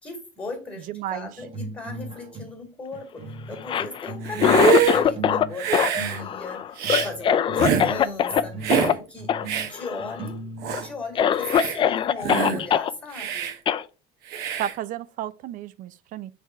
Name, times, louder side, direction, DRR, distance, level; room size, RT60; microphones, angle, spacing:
voice 1, 0.0-9.3 9.7-10.4 10.8-13.5, left 3 dB, 10° left, 1.9 m, -37 dB
voice 2, 0.9-1.3 14.6-16.3, right 12 dB, 50° right, 0.5 m, -32 dB
sound 1, 1.4-2.7 2.9-11.0, right 2 dB, 30° right, 1.1 m, -38 dB
Cough, 3.5-5.5 5.7-8.4 8.7-8.9 9.3-9.5 9.7-10.3 10.7-10.8 11.2-12.9 13.7-13.8, left 9 dB, 30° left, 0.3 m, -22 dB
Hiss, 4.2-5.0 5.6-6.2 6.8-7.1 7.6-7.9 8.6-8.9 9.5-9.7 10.3-10.4 10.6-10.9 11.4-11.8 12.2-12.6 13.1-13.5 14.3-14.7, right 6 dB, 70° right, 1.1 m, -24 dB
6.4 x 3.4 x 4.7 m
cardioid pair, 155°, 17 cm